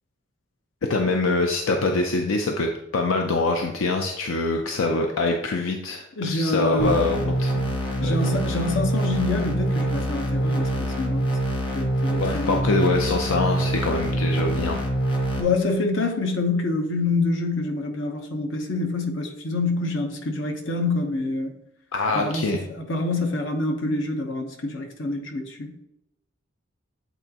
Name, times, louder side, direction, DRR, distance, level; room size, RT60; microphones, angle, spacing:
voice 1, 0.9-7.8 8.0-8.2 12.2-14.8 21.9-22.6, left 3 dB, 90° left, 3 dB, 0.6 m, -24 dB
voice 2, 6.2-7.1 8.0-11.3 11.7-12.7 15.4-21.5 22.1-25.7, left 2 dB, 70° left, 3 dB, 0.9 m, -26 dB
sound 1, 6.8-15.4, right 1 dB, 25° left, 1.0 m, -25 dB
8.2 x 4.0 x 2.9 m, 0.85 s
head